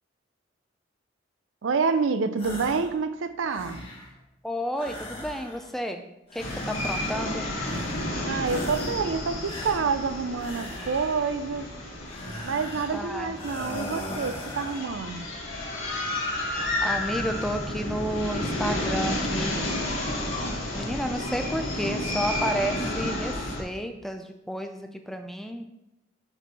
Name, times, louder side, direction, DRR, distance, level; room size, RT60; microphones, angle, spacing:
voice 1, 1.6-3.8 8.2-11.7 12.4-15.2, right 5 dB, 75° right, 11 dB, 0.5 m, -28 dB
sound 1, 2.4-3.0 3.3-4.2 4.7-5.8 6.3-7.3 7.6-8.2 8.4-9.1 9.4-11.3 12.1-13.0 13.3-14.9, left 1 dB, 30° left, 1.2 m, -39 dB
voice 2, 4.4-6.0 6.3-7.4 12.9-13.3 16.8-19.7 20.7-25.6, equal, ahead, 6 dB, 0.4 m, -31 dB
sound 2, 6.4-23.6, left 1 dB, 85° left, 2.0 m, -31 dB
6.8 x 4.5 x 4.2 m, 0.88 s
head